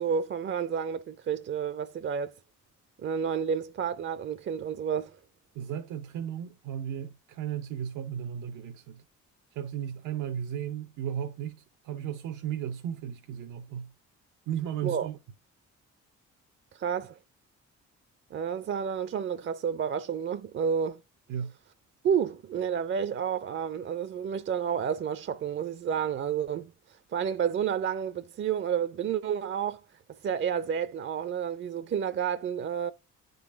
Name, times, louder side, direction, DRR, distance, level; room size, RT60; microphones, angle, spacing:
voice 1, 0.0-2.3 3.0-5.2 14.8-15.1 16.7-17.2 18.3-21.0 22.0-26.7 27.1-29.8 30.2-32.9, right 7 dB, 40° right, 0.4 m, -30 dB
voice 2, 5.5-9.0 9.5-13.9 14.5-15.2 21.3-21.5, right 9 dB, 85° right, 0.7 m, -35 dB
9.8 x 3.9 x 3.5 m
cardioid pair, 90°, 30 cm